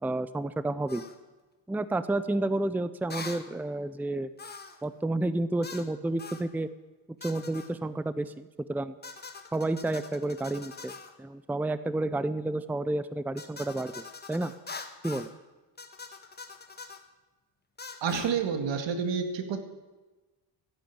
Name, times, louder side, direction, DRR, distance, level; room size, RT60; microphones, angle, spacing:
voice 1, 0.0-1.0 1.7-4.3 4.8-6.7 7.2-8.9 9.5-10.9 11.2-14.5 15.0-15.3, right 2 dB, 5° right, 14 dB, 0.6 m, -30 dB
sound 1, 0.9-1.2 3.1-3.5 4.4-4.8 5.6-5.9 6.2-6.5 7.2-7.7 9.0-11.1 13.4-15.3 15.8-17.0 17.8-18.3, left 4 dB, 20° left, 1.5 m, -43 dB
voice 2, 18.0-19.6, right 6 dB, 75° right, 7 dB, 2.3 m, -29 dB
15.0 x 11.0 x 8.6 m, 1.2 s
cardioid pair, 115°, 44 cm